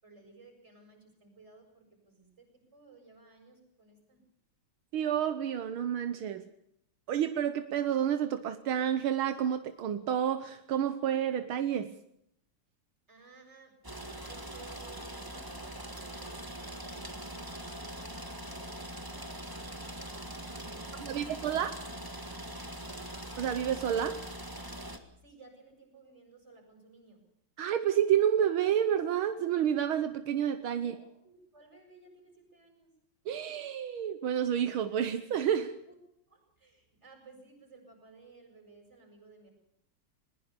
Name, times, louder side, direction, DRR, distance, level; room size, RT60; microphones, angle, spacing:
voice 1, 0.0-4.2 13.1-13.8 14.3-18.8 20.3-22.5 22.8-23.1 25.2-27.2 30.7-32.9 35.9-36.0 36.3-39.5, right 4 dB, 30° right, 4 dB, 7.6 m, -57 dB
voice 2, 4.9-6.4 7.1-11.9 21.0-21.7 23.4-24.2 27.6-31.0 33.3-35.8, right 9 dB, 80° right, 10 dB, 1.9 m, -29 dB
sound 1, 13.8-25.0, right 1 dB, 10° right, 1.8 m, -42 dB
21.0 x 20.5 x 6.8 m, 0.73 s
omnidirectional pair, 2.3 m